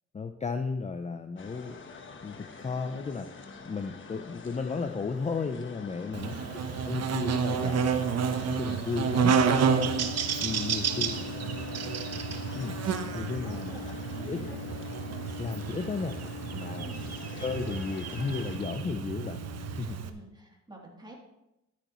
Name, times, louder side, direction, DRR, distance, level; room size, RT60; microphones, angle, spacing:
voice 1, 0.1-1.8 2.2-6.3 6.8-7.9 8.5-9.4 10.4-11.1 12.6-12.8 13.1-13.9 14.3-14.4 15.4-16.2 16.5-16.9 17.4-19.4 19.8-20.0, left 4 dB, 25° left, 8 dB, 0.6 m, -34 dB
sound 1, 1.4-18.6, left 4 dB, 40° left, 1.2 m, -46 dB
voice 2, 6.1-6.5 10.9-11.0 13.4-14.6 16.7-17.2 20.0-21.1, right 1 dB, 15° right, -1 dB, 3.0 m, -48 dB
Buzz, 6.1-20.1, right 6 dB, 55° right, 1.0 m, -30 dB
sound 2, 9.3-19.9, left 6 dB, 75° left, 1.6 m, -43 dB
13.0 x 9.4 x 3.1 m, 0.89 s
cardioid pair, 90°, 30 cm